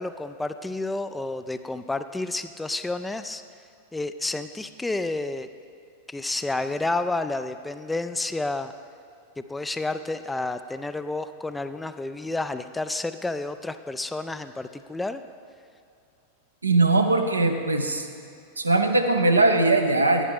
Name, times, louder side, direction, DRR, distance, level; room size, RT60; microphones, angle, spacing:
voice 1, 0.0-3.4 3.9-5.5 6.1-8.7 9.5-15.2, left 2 dB, 10° left, 10 dB, 0.3 m, -30 dB
voice 2, 16.6-18.1 18.6-20.2, right 2 dB, 80° right, 5 dB, 0.7 m, -20 dB
11.0 x 10.5 x 3.6 m, 2.5 s
figure-of-eight pair, 90°, 0 cm